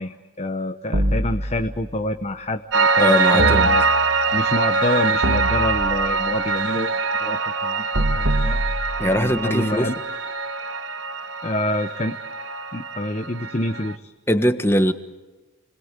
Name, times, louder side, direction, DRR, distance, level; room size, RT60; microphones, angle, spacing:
voice 1, 0.0-3.8 4.3-8.6 9.0-10.0 11.4-12.2 12.7-14.1, left 1 dB, 30° left, 7 dB, 0.9 m, -27 dB
sound 1, 0.9-2.0 3.4-4.4 5.2-6.3 7.9-9.4, right 1 dB, 85° right, 2.0 m, -25 dB
Piano, 2.7-13.9, right 4 dB, 55° right, 1.3 m, -23 dB
voice 2, 3.0-3.7 9.0-9.9 14.3-14.9, equal, 10° left, 9 dB, 1.3 m, -20 dB
30.0 x 21.5 x 8.2 m, 1.2 s
head